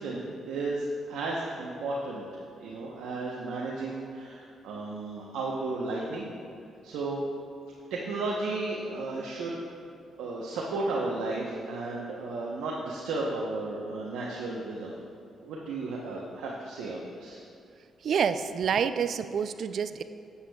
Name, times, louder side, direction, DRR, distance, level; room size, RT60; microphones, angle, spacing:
voice 1, 0.0-2.2 2.6-6.3 6.8-7.2 7.9-9.6 10.2-14.9 15.4-17.4, right 2 dB, 90° right, -4 dB, 0.8 m, -33 dB
voice 2, 18.0-20.0, right 7 dB, 65° right, 11 dB, 0.3 m, -28 dB
11.5 x 8.0 x 2.3 m, 2.4 s
cardioid pair, 75°, 0 cm